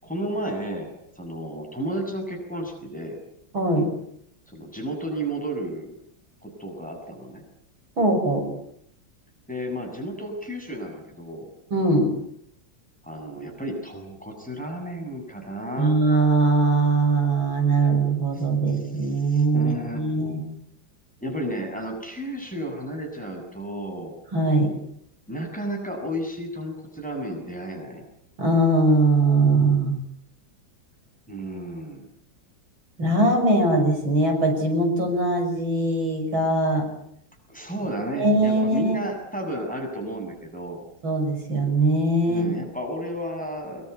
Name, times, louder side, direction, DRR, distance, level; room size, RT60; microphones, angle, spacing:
voice 1, 0.0-3.2 4.5-5.9 6.4-7.4 9.5-11.5 13.0-16.0 18.3-20.0 21.2-24.2 25.3-28.0 31.3-32.1 37.5-40.8 42.2-43.9, right 1 dB, 5° left, 1 dB, 7.2 m, -33 dB
voice 2, 3.5-3.9 8.0-8.5 11.7-12.1 15.8-20.4 24.3-24.7 28.4-30.0 33.0-36.9 38.2-39.0 41.0-42.5, right 2 dB, 85° right, 4 dB, 6.9 m, -21 dB
25.0 x 22.5 x 8.2 m, 0.72 s
omnidirectional pair, 2.1 m